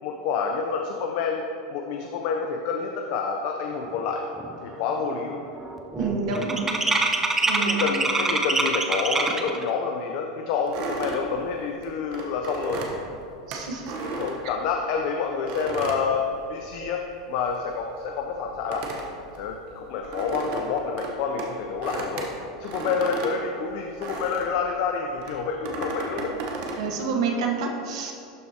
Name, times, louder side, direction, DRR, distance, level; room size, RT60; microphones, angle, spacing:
voice 1, 0.0-1.4 1.7-4.2 4.6-5.4 7.6-12.8 14.1-17.0 17.3-18.8 19.3-22.3 22.6-26.3, left 5 dB, 55° left, 2 dB, 0.6 m, -28 dB
sound 1, 3.9-4.0 4.4-4.7 5.0-9.6, right 2 dB, 10° right, 0.5 m, -25 dB
voice 2, 5.9-6.7 7.5-7.9 13.5-13.9 26.8-28.1, right 4 dB, 75° right, 1 dB, 1.0 m, -28 dB
sound 2, 10.7-15.0 15.5-17.0 17.2-24.6 25.2-26.9, right 3 dB, 50° right, 1.0 m, -35 dB
12.0 x 4.5 x 2.8 m, 2.6 s
supercardioid pair, 135°, 3 cm